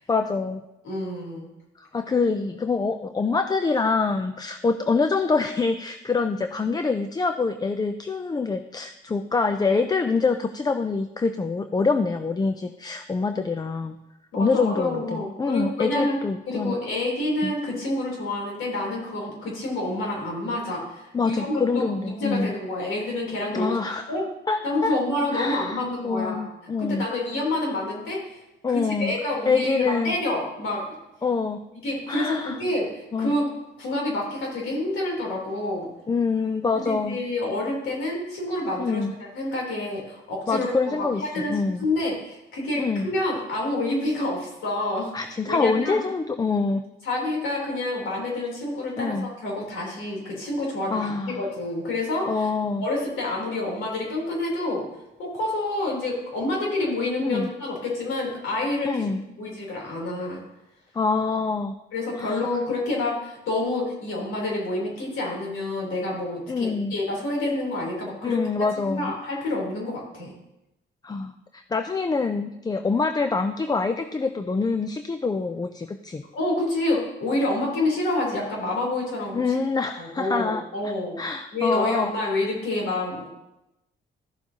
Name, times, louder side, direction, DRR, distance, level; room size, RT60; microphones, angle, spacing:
voice 1, 0.1-0.6 1.8-14.0 14.4-16.8 17.4-17.5 21.1-22.5 23.5-24.1 24.5-25.0 25.3-27.0 28.6-29.1 29.5-30.1 31.2-31.6 32.1-32.6 33.1-33.3 36.1-37.2 38.8-39.1 40.5-41.8 42.8-43.1 45.1-46.8 49.0-49.3 50.9-51.5 52.3-52.8 57.2-57.5 58.8-59.2 60.9-61.7 62.2-62.4 66.5-66.9 68.2-69.1 71.0-76.2 79.3-82.1, left 4 dB, 20° left, 8 dB, 0.4 m, -25 dB
voice 2, 0.8-1.5 14.3-16.2 16.5-23.8 24.1-24.3 24.6-26.5 26.8-28.4 28.7-30.9 31.8-32.9 33.2-33.5 33.8-35.9 36.8-46.0 47.0-52.5 52.8-54.9 55.2-59.1 59.4-60.4 61.9-68.4 68.7-70.3 76.3-79.6 80.0-81.2 81.5-83.3, left 2 dB, 80° left, -2 dB, 3.4 m, -28 dB
14.5 x 7.0 x 2.8 m, 0.93 s
cardioid pair, 90°, 20 cm